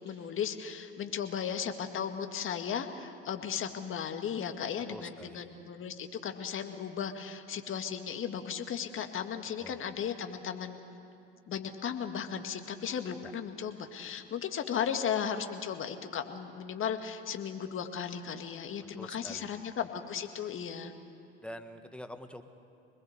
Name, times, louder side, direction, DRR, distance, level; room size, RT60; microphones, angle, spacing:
voice 1, 0.0-10.8 11.5-20.9, left 8 dB, 40° left, 6 dB, 2.1 m, -36 dB
voice 2, 4.9-5.5 9.6-9.8 13.2-13.3 19.0-19.6 21.4-22.5, left 1 dB, 5° left, 7 dB, 1.6 m, -46 dB
25.5 x 20.5 x 8.2 m, 2.6 s
hypercardioid pair, 75°, 31 cm